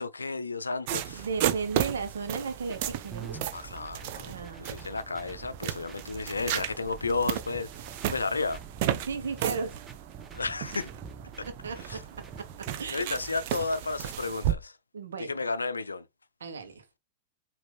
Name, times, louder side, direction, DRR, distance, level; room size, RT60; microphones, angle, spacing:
voice 1, 0.0-1.3 3.5-7.7 8.1-8.6 10.3-10.9 11.4-11.5 11.9-12.0 12.9-14.7 15.3-16.0, left 3 dB, 90° left, 0.5 m, -32 dB
sound 1, 0.9-14.5, right 11 dB, 50° right, 0.6 m, -34 dB
voice 2, 1.1-3.4 4.3-4.9 7.0-7.1 9.0-9.8 11.4-12.0 12.3-12.5 12.8-13.2 14.9-15.4 16.4-16.8, right 4 dB, 75° right, 1.1 m, -35 dB
sound 2, 2.7-12.8, right 5 dB, 20° right, 0.9 m, -47 dB
5.1 x 2.8 x 3.5 m
hypercardioid pair, 105°, 0 cm